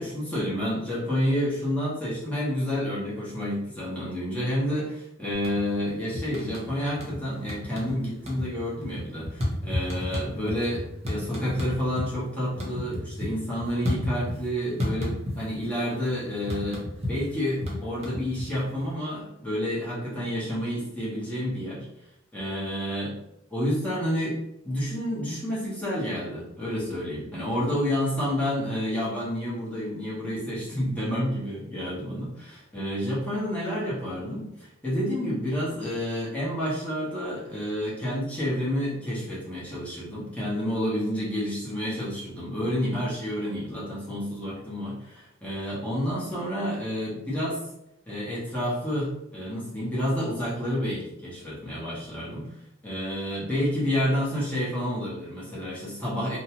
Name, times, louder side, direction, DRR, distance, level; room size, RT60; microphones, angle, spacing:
voice 1, 0.0-16.8 17.1-21.8 22.3-23.2 23.5-24.4 24.6-47.6 48.1-52.5 52.8-56.4, equal, 5° left, -8 dB, 1.0 m, -29 dB
sound 1, 5.3-5.8 6.1-7.2 7.5-12.1 12.4-14.5 14.8-15.7 15.9-18.8, left 1 dB, 30° right, 0.7 m, -31 dB
2.6 x 2.2 x 2.9 m, 0.82 s
head